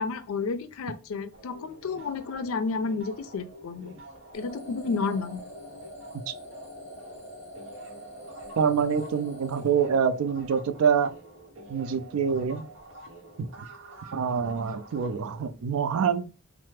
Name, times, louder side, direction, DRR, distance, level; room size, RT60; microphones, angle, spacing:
voice 1, 0.0-3.9 4.3-5.4, left 4 dB, 85° left, 0.4 m, -31 dB
sound 1, 1.3-7.2 7.5-15.5, right 1 dB, 60° right, 0.8 m, -48 dB
sound 2, 4.3-10.5, equal, 30° left, 1.2 m, -45 dB
voice 2, 8.6-11.1 11.7-12.7 13.4-13.5 14.1-16.3, right 6 dB, 90° right, 0.4 m, -26 dB
3.2 x 2.0 x 3.2 m
head